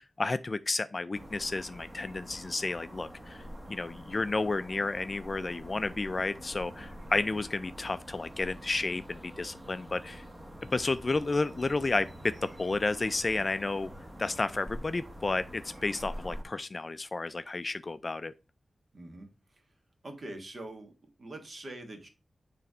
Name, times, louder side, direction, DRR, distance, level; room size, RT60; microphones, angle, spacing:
voice 1, 0.0-3.4 3.7-10.2 10.6-13.9 14.2-18.3, left 3 dB, 35° left, 0.3 m, -32 dB
sound 1, 1.1-16.4, equal, 15° right, 1.1 m, -46 dB
voice 2, 18.9-19.3 20.0-20.9 21.2-22.1, right 1 dB, 45° right, 1.4 m, -43 dB
6.9 x 3.3 x 4.9 m
wide cardioid pair, 135°, 0 cm